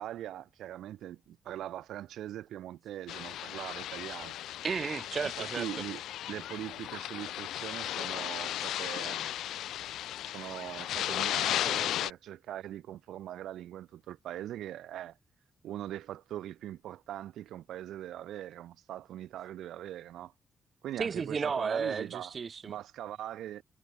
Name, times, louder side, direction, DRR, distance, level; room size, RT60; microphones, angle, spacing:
voice 1, 0.0-4.4 5.4-6.0 6.3-9.3 10.3-15.2 15.6-20.3 20.8-22.3 22.7-23.6, right 12 dB, 90° right, 2.7 m, -41 dB
sound 1, 3.1-12.1, left 13 dB, 90° left, 3.1 m, -35 dB
voice 2, 4.6-5.7 21.0-22.8, right 5 dB, 50° right, 7.5 m, -33 dB
cardioid pair, 70°, 0 cm